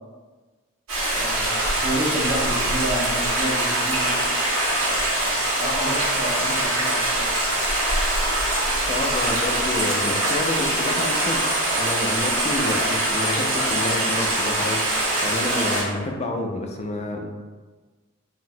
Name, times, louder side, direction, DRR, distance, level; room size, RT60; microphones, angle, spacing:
Stream, 0.9-15.8, right 1 dB, 80° right, 1.1 m, -23 dB
voice 1, 1.1-4.1 4.8-7.4, right 1 dB, 15° right, -10 dB, 1.0 m, -30 dB
voice 2, 8.9-11.5 11.8-17.3, left 2 dB, 30° left, 1 dB, 0.4 m, -29 dB
3.9 x 2.0 x 2.6 m, 1.3 s
head